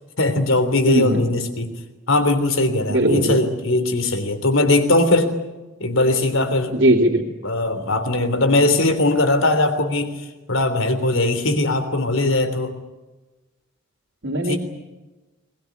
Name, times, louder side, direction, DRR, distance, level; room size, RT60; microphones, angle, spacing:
voice 1, 0.2-1.7 2.1-5.3 5.8-6.8 7.4-10.2 10.5-12.7 14.4-14.6, left 2 dB, 80° left, 9 dB, 3.3 m, -20 dB
voice 2, 0.9-1.2 2.9-3.4 6.7-7.2 14.2-14.6, right 1 dB, 70° right, -3 dB, 2.8 m, -18 dB
21.0 x 20.5 x 9.8 m, 1.1 s
head